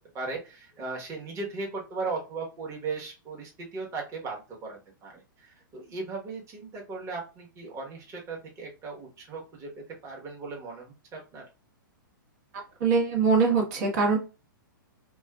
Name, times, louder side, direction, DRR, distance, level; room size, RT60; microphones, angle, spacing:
voice 1, 0.0-11.4, right 3 dB, 25° right, -1 dB, 1.3 m, -37 dB
voice 2, 12.8-14.2, right 4 dB, 50° right, 0 dB, 1.3 m, -22 dB
4.5 x 2.5 x 2.3 m, 0.30 s
hypercardioid pair, 115°, 11 cm